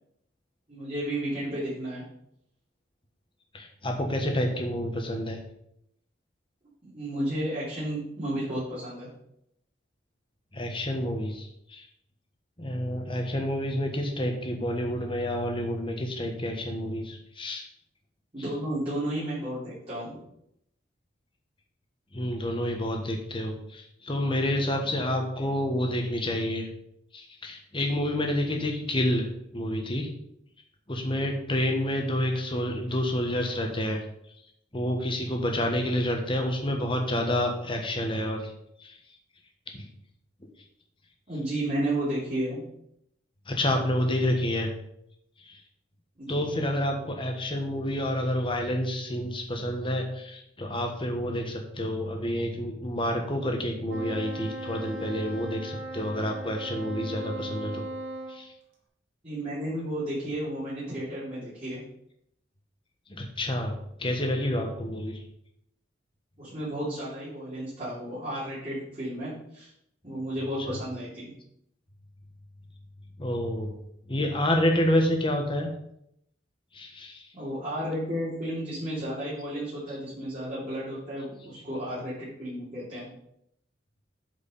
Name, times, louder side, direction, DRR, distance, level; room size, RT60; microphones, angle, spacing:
voice 1, 0.7-2.0 6.8-9.1 18.3-20.1 41.3-42.6 46.2-46.4 59.2-61.8 66.4-69.7 70.0-71.3 77.3-83.1, right 1 dB, 35° right, -11 dB, 3.1 m, -32 dB
voice 2, 3.5-5.4 10.5-11.9 12.6-17.7 22.1-26.7 27.1-30.1 30.9-34.0 34.7-38.5 38.8-39.0 39.7-39.9 43.5-44.7 45.5-45.6 46.3-57.8 58.3-58.5 63.1-65.2 70.7-70.8 73.2-73.8 74.1-75.7 76.7-77.2, left 1 dB, 25° left, 3 dB, 1.4 m, -29 dB
Wind instrument woodwind instrument, 53.9-58.4, right 1 dB, 80° right, 2.7 m, -38 dB
8.5 x 5.0 x 5.5 m, 0.76 s
head